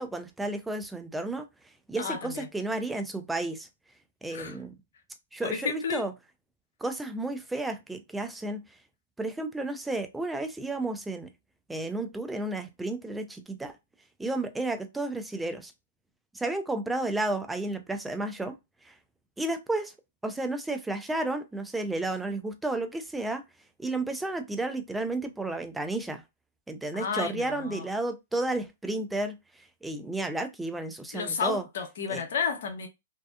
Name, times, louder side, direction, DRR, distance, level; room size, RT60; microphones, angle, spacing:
voice 1, 0.0-1.5 1.9-3.7 4.2-4.8 5.3-6.1 6.8-8.6 9.2-11.3 11.7-13.8 14.2-15.7 16.3-18.6 18.9-19.0 19.4-19.9 20.2-23.4 23.8-26.2 26.7-29.4 29.8-31.6 32.1-32.2, right 2 dB, 5° right, 0.4 m, -32 dB
voice 2, 2.0-2.5 4.3-4.6 5.4-6.0 26.9-27.9 31.1-32.9, left 6 dB, 60° left, 0.8 m, -32 dB
2.5 x 2.1 x 2.3 m
hypercardioid pair, 135°, 0 cm